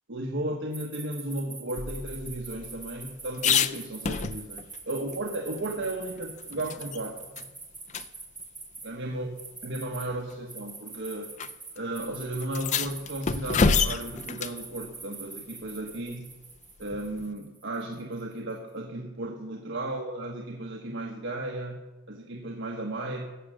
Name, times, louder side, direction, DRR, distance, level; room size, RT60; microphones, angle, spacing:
voice 1, 0.1-7.2 8.8-9.3 9.6-11.3 11.7-16.3 16.8-23.3, right 1 dB, 55° right, 0 dB, 1.2 m, -35 dB
sound 1, 0.7-8.9 9.4-10.0 10.5-18.3, right 4 dB, 10° right, 2.5 m, -43 dB
sound 2, 1.8-4.8 5.1-5.2 5.6-7.0 7.4-7.5 7.9-8.1 9.1-9.2 10.1-10.4 11.4-11.5 11.8-11.9 12.4-14.6 16.9-17.3, left 5 dB, 35° left, 0.4 m, -29 dB
16.0 x 7.5 x 6.3 m, 1.1 s
head